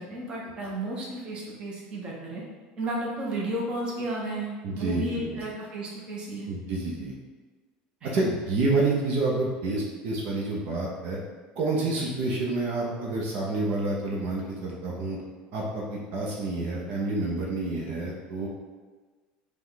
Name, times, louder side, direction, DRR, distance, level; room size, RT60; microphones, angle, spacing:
voice 1, 0.0-2.4 2.8-6.5 8.0-8.1 11.9-12.1, right 1 dB, 30° right, -4 dB, 1.0 m, -33 dB
voice 2, 4.6-5.4 6.5-7.2 8.1-11.2 11.6-15.2 15.5-18.5, right 2 dB, 55° right, -3 dB, 0.8 m, -28 dB
5.0 x 2.3 x 4.0 m, 1.4 s
cardioid pair, 155°, 3 cm